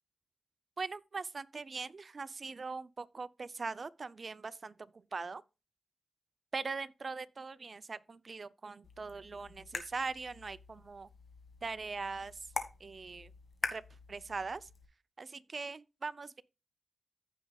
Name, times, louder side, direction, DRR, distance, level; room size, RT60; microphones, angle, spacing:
voice 1, 0.8-4.7 5.1-5.4 6.5-11.1 11.6-12.4 12.8-13.3 13.7-13.8 14.1-14.7 15.2-16.4, right 4 dB, 50° right, 0.5 m, -41 dB
sound 1, 8.8-14.9, left 3 dB, 55° left, 1.4 m, -44 dB
15.5 x 5.3 x 2.3 m
cardioid pair, 60°, 0 cm